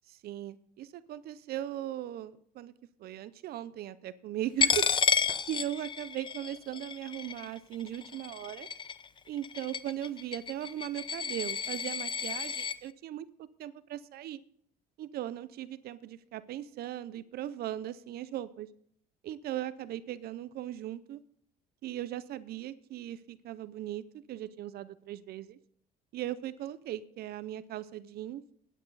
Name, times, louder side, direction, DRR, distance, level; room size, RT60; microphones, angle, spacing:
voice 1, 0.0-2.7 3.0-4.9 5.5-8.7 9.3-13.3 13.6-14.4 15.0-18.7 19.2-21.2 21.8-25.6 26.1-28.4, right 12 dB, 65° right, 16 dB, 0.6 m, -38 dB
Coin (dropping), 4.6-12.8, left 6 dB, 30° left, 0.6 m, -32 dB
16.5 x 9.3 x 4.0 m, 0.65 s
cardioid pair, 110°, 17 cm